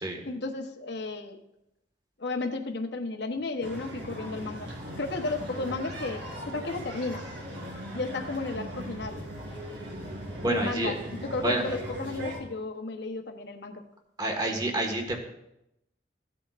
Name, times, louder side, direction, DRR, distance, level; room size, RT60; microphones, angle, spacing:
voice 1, 0.2-1.4 2.2-4.7 5.0-7.3 7.9-9.2 10.5-13.8, left 3 dB, 60° left, 5 dB, 1.0 m, -33 dB
sound 1, 3.6-12.4, equal, 75° right, 3.7 m, -39 dB
voice 2, 10.4-10.9 11.4-11.6 14.2-15.2, right 1 dB, 25° right, 2 dB, 1.6 m, -28 dB
16.0 x 8.6 x 2.5 m, 0.84 s
head